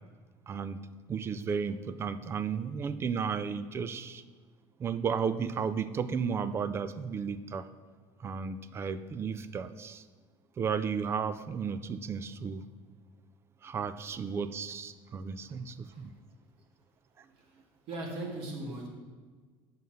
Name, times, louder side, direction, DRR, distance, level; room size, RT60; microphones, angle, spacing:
voice 1, 0.5-4.2 4.8-7.7 8.2-10.0 10.6-12.7 13.6-16.1 17.2-17.3, right 6 dB, 25° right, 13 dB, 0.4 m, -34 dB
voice 2, 17.9-18.9, right 2 dB, 60° right, 0 dB, 1.8 m, -38 dB
7.4 x 5.6 x 6.4 m, 1.5 s
cardioid pair, 155°, 10 cm